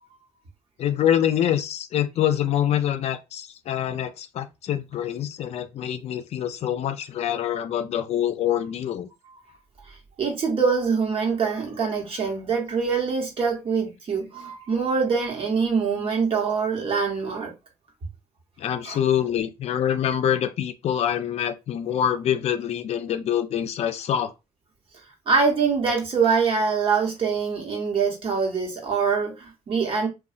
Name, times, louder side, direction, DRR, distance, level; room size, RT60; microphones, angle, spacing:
voice 1, 0.8-9.1 18.6-24.3, left 10 dB, 55° left, 0.4 m, -25 dB
voice 2, 10.2-17.5 18.8-19.0 25.3-30.1, right 5 dB, 45° right, 1.1 m, -24 dB
2.7 x 2.2 x 2.5 m
cardioid pair, 90°, 13 cm